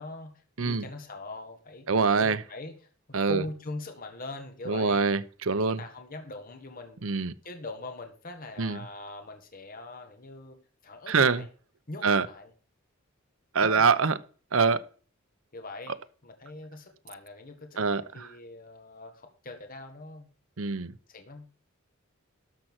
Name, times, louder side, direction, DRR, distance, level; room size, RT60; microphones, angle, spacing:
voice 1, 0.0-2.8 3.1-5.1 5.6-7.0 7.4-11.5 11.9-12.5 13.6-14.0 15.5-20.3 21.1-21.5, left 2 dB, 45° left, 1.8 m, -42 dB
voice 2, 1.9-2.4 3.1-3.4 4.7-5.8 7.0-7.3 8.6-8.8 11.1-11.4 12.0-12.3 13.5-14.1 14.5-14.8 17.8-18.0 20.6-20.9, right 5 dB, 70° right, 0.8 m, -24 dB
13.0 x 5.8 x 6.2 m
head